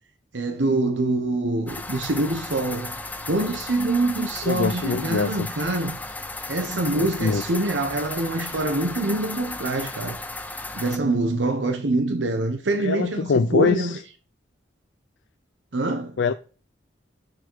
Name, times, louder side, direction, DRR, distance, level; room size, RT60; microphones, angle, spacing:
voice 1, 0.3-2.9 3.3-6.0 6.5-10.2 10.7-14.0 15.7-16.2, right 2 dB, 90° right, 0.9 m, -25 dB
sound 1, 1.7-11.0, left 2 dB, 10° left, 0.5 m, -35 dB
voice 2, 4.5-5.5 6.9-7.4 12.8-14.0 16.2-16.3, left 5 dB, 90° left, 0.5 m, -24 dB
6.7 x 6.4 x 4.6 m
head